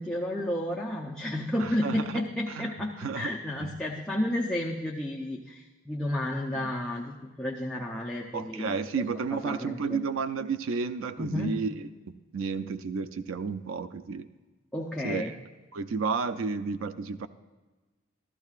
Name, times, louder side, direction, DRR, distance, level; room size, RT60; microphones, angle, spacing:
voice 1, 0.0-8.7 9.3-10.0 11.2-11.6 14.7-15.3, left 1 dB, 5° left, -4 dB, 0.6 m, -31 dB
voice 2, 1.6-2.2 2.5-2.7 3.0-3.3 3.6-3.7 6.5-6.7 8.3-14.3 15.0-15.4 15.7-17.3, right 5 dB, 90° right, 11 dB, 0.4 m, -32 dB
14.0 x 14.0 x 2.4 m, 1.2 s
head